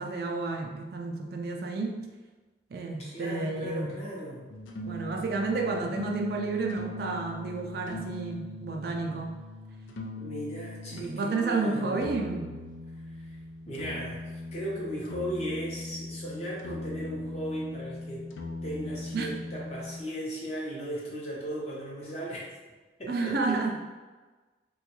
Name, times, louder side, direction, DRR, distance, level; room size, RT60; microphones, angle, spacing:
voice 1, 0.0-2.0 2.7-4.0 4.9-9.4 10.9-12.5 19.1-19.3 23.1-23.8, right 3 dB, 55° right, 2 dB, 0.3 m, -31 dB
voice 2, 3.0-4.4 10.1-12.0 13.1-13.4 13.7-18.3 18.6-22.4 23.0-23.4, right 1 dB, 35° left, -5 dB, 0.7 m, -37 dB
sound 1, 4.5-11.2 12.0-20.0, left 1 dB, 90° left, 0.4 m, -40 dB
3.0 x 2.3 x 2.9 m, 1.3 s
head